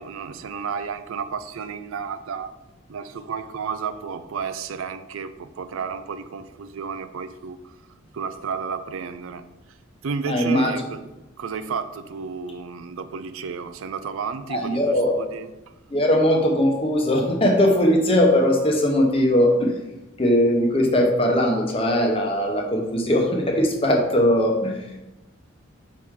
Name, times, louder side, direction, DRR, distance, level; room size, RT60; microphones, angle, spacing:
voice 1, 0.0-2.5 2.9-7.8 8.1-9.5 10.0-11.0 11.4-15.5, right 5 dB, 85° right, 0.4 m, -32 dB
voice 2, 10.3-10.7 14.5-15.2 15.9-19.7 20.2-25.0, left 1 dB, 25° left, 0.9 m, -20 dB
5.9 x 4.7 x 3.6 m
head